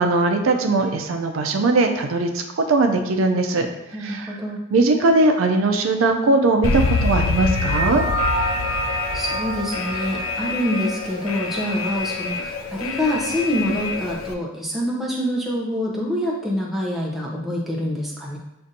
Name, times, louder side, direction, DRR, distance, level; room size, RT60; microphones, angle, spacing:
voice 1, 0.0-3.7 4.0-4.4 4.7-8.0, right 2 dB, 75° right, 4 dB, 0.4 m, -19 dB
voice 2, 3.9-4.6 9.1-18.4, equal, ahead, -4 dB, 0.6 m, -26 dB
Alarm, 6.6-14.3, left 4 dB, 85° left, 0.4 m, -26 dB
sound 1, 7.5-12.2, right 1 dB, 20° right, 1.4 m, -29 dB
6.5 x 2.5 x 2.7 m, 0.91 s
head